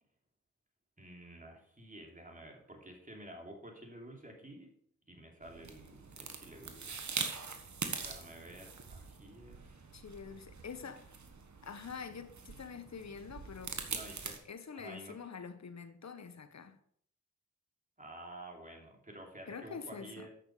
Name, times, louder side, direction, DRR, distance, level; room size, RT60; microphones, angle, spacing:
voice 1, 1.0-4.7 5.1-7.0 8.0-9.9 13.8-14.4 14.7-15.3 18.0-20.3, right 1 dB, 25° right, 3.0 m, -51 dB
sound 1, 5.4-14.4, right 5 dB, 55° right, 1.4 m, -43 dB
voice 2, 9.9-11.1 11.6-13.8 14.4-16.8 19.5-20.3, left 6 dB, 50° left, 1.1 m, -46 dB
8.6 x 6.6 x 4.9 m
cardioid pair, 40°, 34 cm